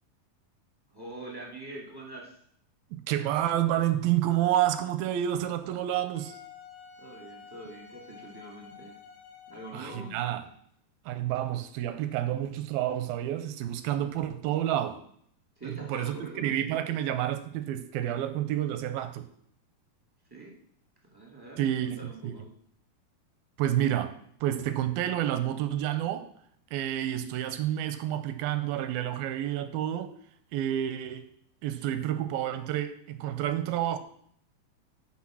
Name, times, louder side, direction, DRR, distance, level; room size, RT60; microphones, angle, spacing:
voice 1, 0.9-2.4 7.0-9.0 9.5-10.2 15.6-16.6 20.3-20.5 21.1-22.5, right 2 dB, 10° right, 1.1 m, -44 dB
voice 2, 2.9-6.4 9.7-10.5 11.1-15.0 15.6-19.3 21.6-22.3 23.6-26.3 26.7-30.1 30.5-31.3 31.6-34.0, right 12 dB, 85° right, 2.4 m, -29 dB
Wind instrument woodwind instrument, 6.1-10.7, left 7 dB, 90° left, 3.7 m, -50 dB
12.5 x 4.4 x 6.2 m
omnidirectional pair, 4.3 m